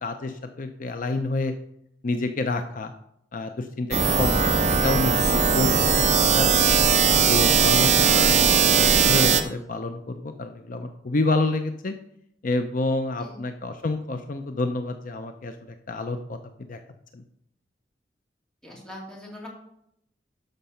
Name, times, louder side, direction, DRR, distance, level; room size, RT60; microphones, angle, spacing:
voice 1, 0.0-1.5 2.0-2.9 3.3-3.9 4.2-6.5 7.1-11.9 12.4-15.5 15.9-16.4 16.7-16.8 17.1-17.2, left 2 dB, 50° left, 7 dB, 0.6 m, -28 dB
sound 1, 3.9-9.4, right 6 dB, 40° right, 0.8 m, -19 dB
voice 2, 4.0-4.4 13.2-13.4 18.6-19.5, left 1 dB, 5° left, -2 dB, 2.7 m, -42 dB
12.0 x 5.2 x 5.7 m, 0.77 s
head